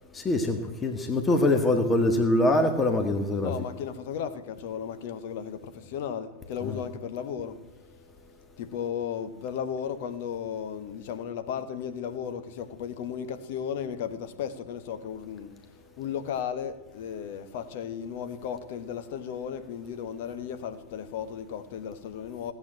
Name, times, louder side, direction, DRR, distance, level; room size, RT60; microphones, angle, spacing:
voice 1, 0.1-3.5 6.6-6.7, left 1 dB, 15° left, 1.7 m, -24 dB
voice 2, 3.4-7.6 8.6-15.5 16.0-22.5, left 8 dB, 50° left, 1.5 m, -35 dB
17.5 x 8.3 x 9.1 m
figure-of-eight pair, 90°, 0 cm